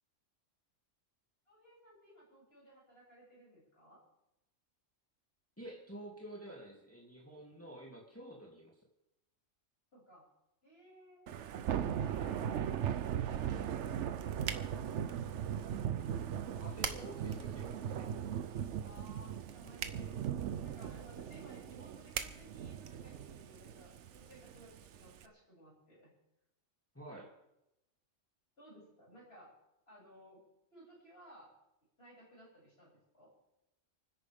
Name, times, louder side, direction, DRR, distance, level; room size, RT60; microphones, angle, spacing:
voice 1, 1.5-4.0 9.9-10.2 10.6-11.2 18.8-20.2 20.6-26.1 28.6-29.5 29.9-30.4 30.7-31.5 32.0-33.3, right 1 dB, 50° left, -6 dB, 8.0 m, -58 dB
voice 2, 5.6-8.7 16.6-18.1 26.9-27.3, right 1 dB, 10° left, -3 dB, 2.6 m, -49 dB
Thunder / Rain, 11.3-25.2, right 9 dB, 65° right, 0.9 m, -39 dB
sound 1, 13.7-23.6, right 7 dB, 85° right, 1.3 m, -47 dB
29.0 x 10.0 x 3.6 m, 0.89 s
omnidirectional pair, 1.3 m